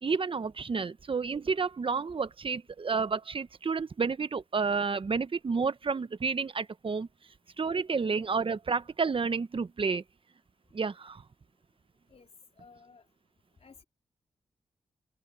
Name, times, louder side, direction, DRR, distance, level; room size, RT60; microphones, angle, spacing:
voice 1, 0.0-7.1 7.6-10.0 10.7-11.2, right 5 dB, 50° right, 1.1 m, -30 dB
voice 2, 12.6-13.1 13.6-13.8, left 4 dB, 55° left, 4.1 m, -55 dB
cardioid pair, 50°, 12 cm